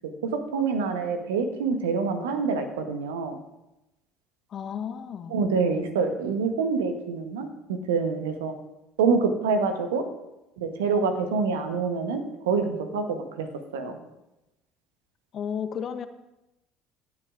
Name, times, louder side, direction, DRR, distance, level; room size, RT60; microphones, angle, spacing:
voice 1, 0.2-3.4 5.3-8.5 9.0-10.1 10.6-13.5 13.7-14.0, right 5 dB, 80° right, 7 dB, 1.0 m, -26 dB
voice 2, 4.5-5.4 15.3-16.1, left 7 dB, 50° left, 10 dB, 0.7 m, -33 dB
15.5 x 8.2 x 2.5 m, 0.93 s
hypercardioid pair, 60°, 0 cm